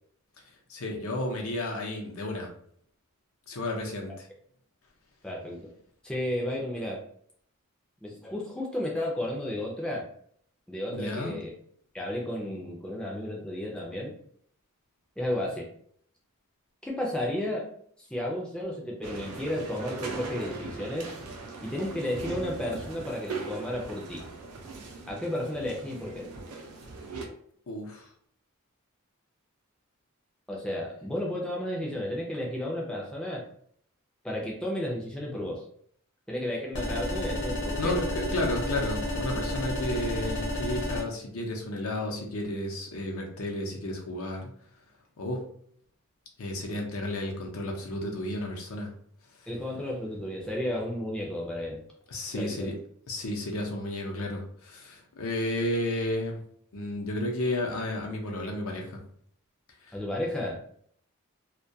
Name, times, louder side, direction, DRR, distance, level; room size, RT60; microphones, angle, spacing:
voice 1, 0.7-2.5 3.5-4.3 10.9-11.4 27.7-28.1 37.8-44.5 45.2-45.4 46.4-48.9 52.1-52.7 53.1-56.4 56.7-59.0 59.9-60.0, left 1 dB, 75° left, 1 dB, 0.6 m, -32 dB
voice 2, 5.2-5.7 6.0-7.0 8.0-10.1 10.7-11.5 11.9-14.1 15.2-15.7 16.8-17.7 18.0-21.1 21.6-24.2 25.1-26.3 30.5-33.5 34.2-35.6 36.3-37.9 49.5-51.8 52.3-52.8 59.9-60.6, left 1 dB, 5° left, -2 dB, 0.3 m, -33 dB
sound 1, 19.0-27.3, right 3 dB, 85° right, 0.5 m, -39 dB
sound 2, 36.7-41.0, left 1 dB, 55° left, 0.9 m, -31 dB
2.2 x 2.2 x 2.6 m, 0.62 s
head